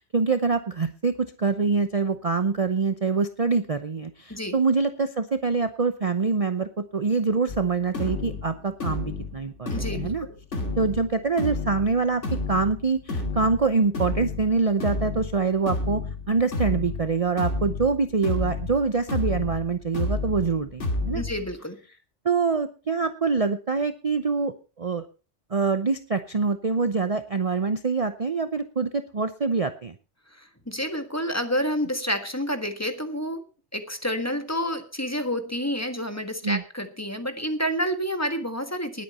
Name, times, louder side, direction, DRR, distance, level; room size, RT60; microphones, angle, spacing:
voice 1, 0.0-10.3 10.8-12.2 12.5-16.0 16.3-21.2 22.2-25.0 25.5-29.9 36.4-36.6, right 4 dB, 35° right, 10 dB, 0.8 m, -25 dB
sound 1, 7.5-21.5, left 3 dB, 90° left, 2.7 m, -31 dB
voice 2, 9.7-10.3 10.6-10.8 21.1-21.8 30.3-33.4 33.7-39.0, equal, 15° left, 8 dB, 1.5 m, -29 dB
20.0 x 8.6 x 4.2 m, 0.33 s
omnidirectional pair, 1.2 m